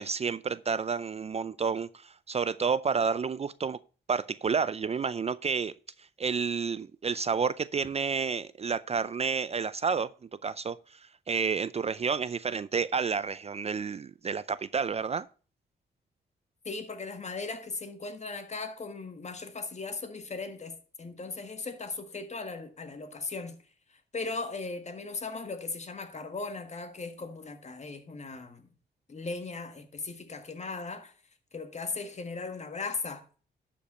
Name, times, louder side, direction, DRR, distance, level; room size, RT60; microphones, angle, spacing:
voice 1, 0.0-3.8 4.1-5.7 6.2-10.1 10.4-10.8 11.3-15.3, right 5 dB, 35° right, 0.4 m, -30 dB
voice 2, 16.6-23.6 24.1-28.7 29.1-31.1 31.5-33.2, left 3 dB, 40° left, 1.6 m, -38 dB
11.5 x 5.2 x 5.6 m
cardioid pair, 80°, 18 cm